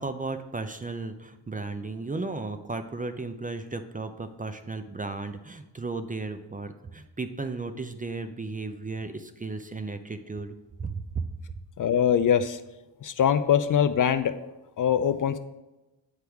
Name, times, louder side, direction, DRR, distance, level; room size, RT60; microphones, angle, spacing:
voice 1, 0.0-11.3, right 3 dB, 20° right, 8 dB, 0.5 m, -35 dB
voice 2, 11.8-12.6 13.0-14.3 14.8-15.4, left 8 dB, 45° left, 11 dB, 0.4 m, -23 dB
7.8 x 4.8 x 3.5 m, 1.0 s
cardioid pair, 65°, 44 cm